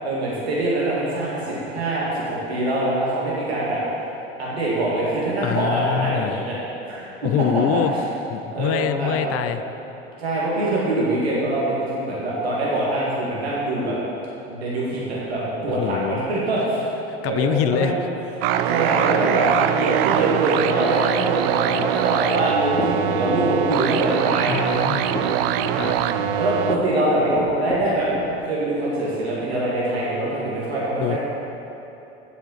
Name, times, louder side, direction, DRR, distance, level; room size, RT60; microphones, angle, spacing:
voice 1, 0.0-3.8 4.4-6.6 6.9-7.5 7.7-7.8 8.5-9.4 10.2-14.0 14.5-16.8 17.2-18.0 18.6-24.6 25.8-28.1 28.4-31.2, right 2 dB, 90° right, -6 dB, 2.2 m, -24 dB
voice 2, 5.4-6.4 7.2-7.9 8.3-9.6 15.7-16.2 17.2-17.9 24.5-25.0 25.8-26.0 31.0-31.2, left 11 dB, 50° left, 11 dB, 0.6 m, -24 dB
sound 1, 18.4-26.8, right 10 dB, 70° right, 0.5 m, -23 dB
sound 2, 22.3-28.4, left 2 dB, 20° left, 2.3 m, -33 dB
7.9 x 6.6 x 7.8 m, 3.0 s
hypercardioid pair, 75°, 31 cm